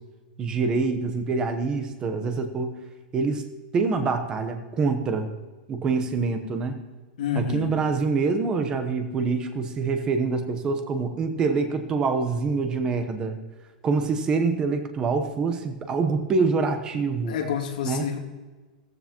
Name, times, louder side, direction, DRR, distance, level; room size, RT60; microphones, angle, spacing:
voice 1, 0.4-2.7 3.1-3.4 3.7-5.3 5.7-6.8 7.4-13.4 13.8-17.3 17.8-18.1, right 4 dB, 15° right, 7 dB, 1.0 m, -25 dB
voice 2, 7.2-7.7 16.9-18.2, left 8 dB, 65° left, 0 dB, 2.6 m, -29 dB
15.0 x 14.5 x 3.0 m, 1.3 s
supercardioid pair, 170°, 5 cm